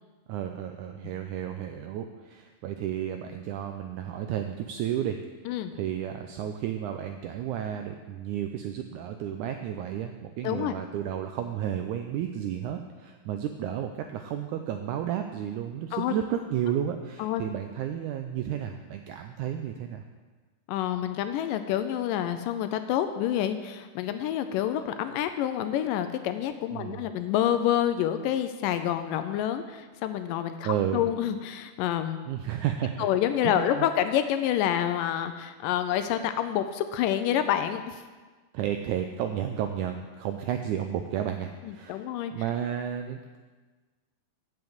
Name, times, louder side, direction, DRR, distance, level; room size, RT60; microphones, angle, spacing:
voice 1, 0.3-5.2 5.7-20.0 26.7-27.1 30.6-31.0 32.3-33.1 33.4-33.9 38.5-43.4, right 10 dB, 85° right, 6 dB, 1.7 m, -32 dB
voice 2, 10.4-10.8 15.9-16.1 17.2-17.4 20.7-32.2 33.0-38.0 41.6-42.3, left 11 dB, 80° left, 9 dB, 2.1 m, -28 dB
7.7 x 7.1 x 7.9 m, 1.4 s
omnidirectional pair, 4.1 m